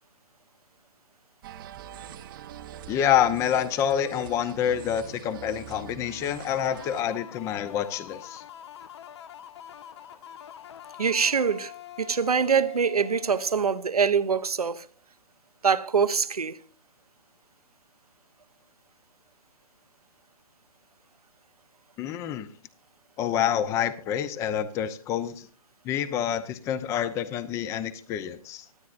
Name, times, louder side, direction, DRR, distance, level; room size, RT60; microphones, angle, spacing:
sound 1, 1.4-7.0, right 10 dB, 35° right, 0.9 m, -43 dB
voice 1, 2.9-8.4 22.0-22.5 23.2-25.5 25.8-28.7, left 9 dB, 15° left, 0.7 m, -27 dB
sound 2, 6.6-14.1, left 11 dB, 45° left, 0.9 m, -45 dB
voice 2, 11.0-11.7 12.0-14.8 15.6-16.6, right 6 dB, 80° right, 1.0 m, -24 dB
25.5 x 9.3 x 2.6 m
figure-of-eight pair, 140°, 19 cm